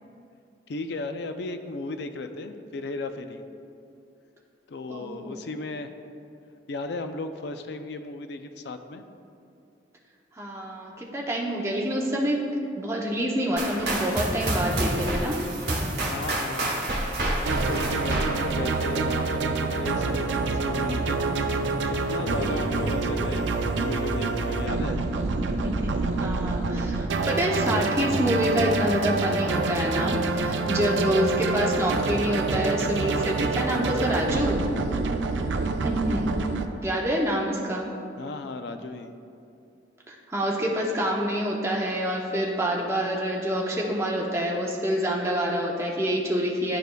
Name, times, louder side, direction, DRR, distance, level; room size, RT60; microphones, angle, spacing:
voice 1, 0.7-3.4 4.7-5.9 6.7-9.1 16.0-16.8 17.5-21.2 21.9-25.0 38.2-39.2, left 3 dB, 70° left, 8 dB, 0.4 m, -35 dB
voice 2, 4.9-5.4 10.4-12.5 12.8-15.4 22.4-22.8 25.3-25.9 26.2-34.6 35.8-36.3 36.8-37.9 40.1-46.8, equal, 15° right, -2 dB, 0.7 m, -27 dB
sound 1, 13.6-19.4, right 1 dB, 70° right, 1.0 m, -29 dB
sound 2, 17.5-36.7, right 3 dB, 85° right, 0.4 m, -27 dB
10.5 x 5.0 x 2.2 m, 2.6 s
head